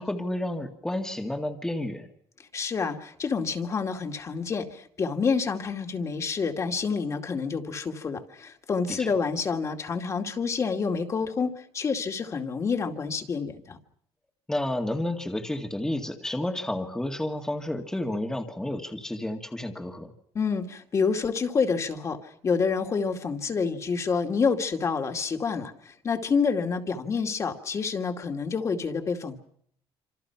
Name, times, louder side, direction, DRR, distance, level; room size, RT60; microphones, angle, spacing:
voice 1, 0.0-2.1 8.9-9.1 14.5-20.1, left 1 dB, 5° left, 3 dB, 2.0 m, -31 dB
voice 2, 2.5-13.8 20.3-22.2 22.4-29.4, left 5 dB, 30° left, 5 dB, 2.4 m, -28 dB
27.0 x 27.0 x 5.8 m, 0.66 s
cardioid pair, 160°, 10 cm